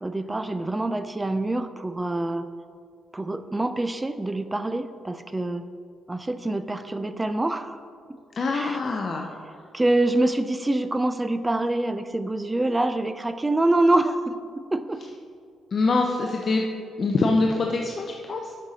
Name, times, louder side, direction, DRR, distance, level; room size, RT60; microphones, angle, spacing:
voice 1, 0.0-2.5 3.1-5.6 6.1-7.8 8.5-8.8 9.7-15.0, right 2 dB, 15° right, 11 dB, 0.4 m, -25 dB
voice 2, 8.3-9.3 15.7-16.6 17.0-18.5, left 3 dB, 45° left, 1 dB, 0.6 m, -24 dB
8.7 x 6.4 x 4.1 m, 2.2 s
cardioid pair, 90°, 0 cm